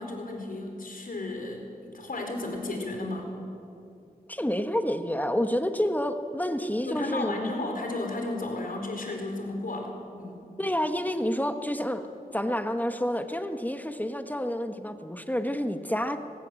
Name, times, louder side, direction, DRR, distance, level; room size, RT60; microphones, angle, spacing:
voice 1, 0.0-3.3 6.8-10.4, left 2 dB, 65° left, 2 dB, 4.3 m, -34 dB
voice 2, 4.3-7.5 10.6-12.1 12.3-16.2, equal, 10° left, 8 dB, 1.3 m, -29 dB
24.5 x 19.5 x 7.7 m, 2.6 s
wide cardioid pair, 70°, 16 cm